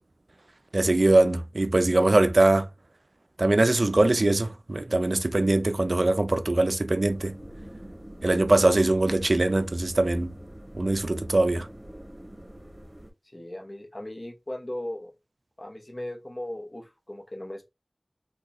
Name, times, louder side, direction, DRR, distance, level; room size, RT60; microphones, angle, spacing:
voice 1, 0.7-2.7 3.4-7.3 8.2-10.3 10.7-11.7, right 2 dB, 70° right, 0.4 m, -22 dB
sound 1, 7.0-13.1, right 1 dB, 35° right, 0.8 m, -45 dB
voice 2, 13.3-15.1 15.6-17.7, left 1 dB, 45° left, 0.8 m, -37 dB
3.7 x 2.2 x 2.9 m
wide cardioid pair, 50°, 0 cm